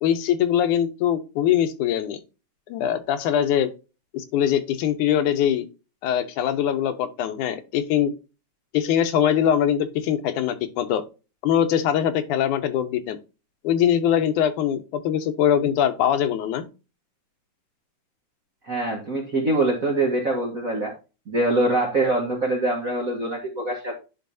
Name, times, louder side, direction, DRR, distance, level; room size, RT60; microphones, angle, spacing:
voice 1, 0.0-2.2 2.7-3.7 4.1-5.7 6.0-8.2 8.7-11.0 11.4-13.2 13.6-16.6, left 9 dB, 80° left, 9 dB, 2.3 m, -22 dB
voice 2, 18.7-20.9 21.3-24.0, right 2 dB, 40° right, 0 dB, 1.2 m, -24 dB
10.5 x 5.0 x 2.6 m, 0.30 s
omnidirectional pair, 3.6 m